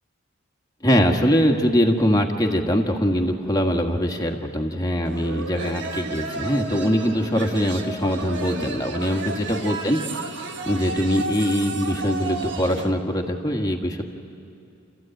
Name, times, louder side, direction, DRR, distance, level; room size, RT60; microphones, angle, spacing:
voice 1, 0.8-10.3 10.6-14.0, equal, 20° left, 2 dB, 1.7 m, -22 dB
sound 1, 5.0-12.9, right 3 dB, 60° right, 1.6 m, -32 dB
29.5 x 15.0 x 9.1 m, 2.6 s
head